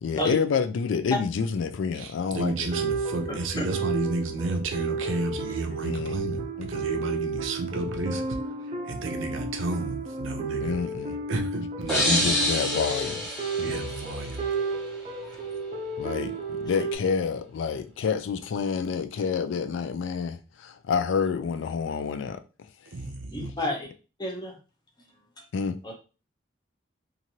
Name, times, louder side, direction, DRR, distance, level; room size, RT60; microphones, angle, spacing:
voice 1, 0.0-2.7 5.8-6.1 6.6-6.7 10.6-11.2 12.0-13.2 16.0-22.4 25.5-25.8, left 6 dB, 75° left, 0.3 m, -28 dB
voice 2, 1.9-8.3 8.8-10.7 11.3-12.4 13.6-14.5 22.9-23.5, right 3 dB, 85° right, 0.6 m, -31 dB
sound 1, 2.5-17.0, right 3 dB, 30° right, 0.5 m, -33 dB
sound 2, 11.9-14.7, left 1 dB, ahead, 1.3 m, -28 dB
voice 3, 23.3-23.9 24.2-24.6 25.4-25.5 25.8-25.9, left 1 dB, 20° left, 0.6 m, -31 dB
3.0 x 2.5 x 2.7 m
head